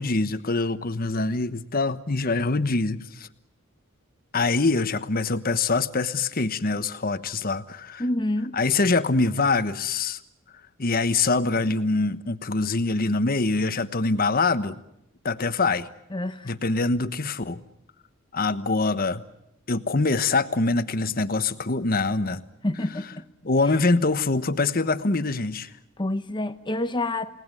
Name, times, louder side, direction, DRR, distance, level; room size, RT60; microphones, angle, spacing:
voice 1, 0.0-3.3 4.3-8.0 8.5-10.2 10.8-14.8 15.2-15.9 16.4-17.6 18.3-19.2 19.7-22.4 23.4-25.7, left 3 dB, 45° left, 12 dB, 1.2 m, -24 dB
voice 2, 8.0-8.6 16.1-16.5 22.6-23.2 26.0-27.3, left 1 dB, 20° left, 11 dB, 0.9 m, -27 dB
30.0 x 18.5 x 9.7 m, 0.81 s
head